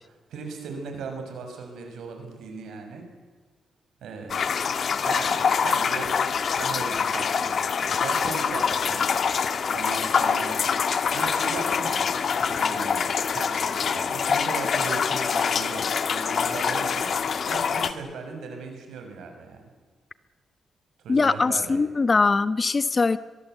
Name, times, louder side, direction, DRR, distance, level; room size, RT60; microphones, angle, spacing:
voice 1, 0.0-3.1 4.0-4.6 5.0-6.2 6.5-9.0 9.7-10.8 11.1-12.2 12.5-19.6 21.0-21.8, right 4 dB, 80° right, 4 dB, 6.4 m, -37 dB
sound 1, 4.3-17.9, left 6 dB, 55° left, 1.5 m, -25 dB
voice 2, 21.1-23.2, left 4 dB, 35° left, 14 dB, 1.0 m, -21 dB
23.0 x 22.5 x 8.1 m, 1.4 s
cardioid pair, 85°, 0 cm